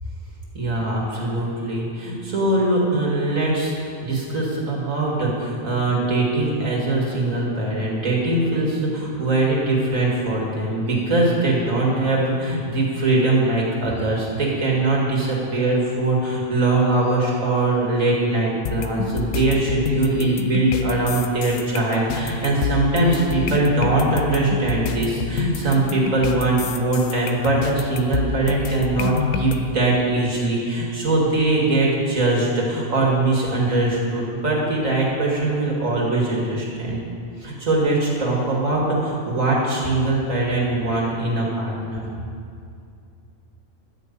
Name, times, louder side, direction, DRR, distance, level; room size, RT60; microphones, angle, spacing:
voice 1, 0.5-37.0 37.4-42.0, right 2 dB, 75° right, -3 dB, 2.7 m, -21 dB
sound 1, 18.7-29.6, left 6 dB, 75° left, 1.1 m, -27 dB
12.0 x 5.4 x 8.4 m, 2.4 s
omnidirectional pair, 1.4 m